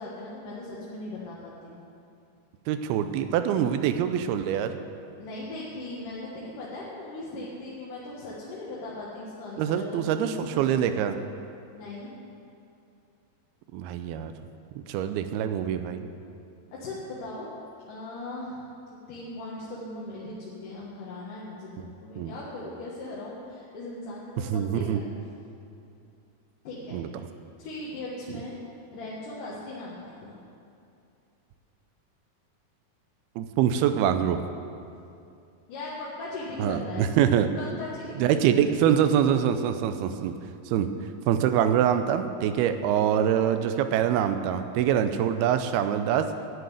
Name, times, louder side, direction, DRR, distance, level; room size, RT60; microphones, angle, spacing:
voice 1, 0.0-1.7 5.2-10.9 11.7-12.2 16.7-17.5 17.9-18.6 19.1-25.0 26.6-27.0 27.6-28.6 28.9-30.4 35.7-37.0 37.6-38.4 40.7-40.8, left 2 dB, 60° left, -7 dB, 2.7 m, -39 dB
voice 2, 2.7-4.8 9.6-11.2 13.7-14.3 14.9-16.1 22.2-22.3 24.5-25.0 26.9-27.1 33.4-34.4 36.6-37.5 38.2-40.3 40.7-40.9 41.3-46.3, right 9 dB, 85° right, 9 dB, 2.5 m, -24 dB
11.5 x 6.7 x 9.2 m, 2.6 s
omnidirectional pair, 4.6 m